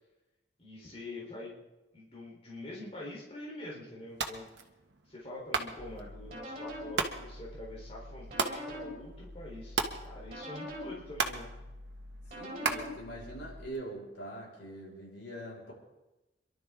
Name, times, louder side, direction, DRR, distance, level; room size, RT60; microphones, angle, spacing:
voice 1, 0.6-1.6 1.9-4.5 5.1-11.5, left 1 dB, 35° left, -4 dB, 3.8 m, -45 dB
sound 1, 4.1-13.8, right 4 dB, 75° right, 1.3 m, -38 dB
sound 2, 5.8-13.7, left 1 dB, 40° right, 4.5 m, -45 dB
voice 2, 12.4-15.7, right 1 dB, 85° left, -2 dB, 5.5 m, -43 dB
27.0 x 12.0 x 3.7 m, 1.0 s
head